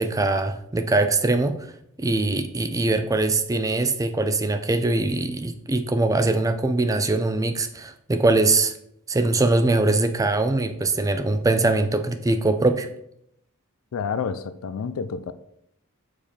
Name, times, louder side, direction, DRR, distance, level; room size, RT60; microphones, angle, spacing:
voice 1, 0.0-1.6 2.0-8.7 9.1-12.9, right 2 dB, 15° right, 0.4 m, -22 dB
voice 2, 13.9-15.3, left 6 dB, 75° left, 0.4 m, -29 dB
6.8 x 4.9 x 4.4 m
head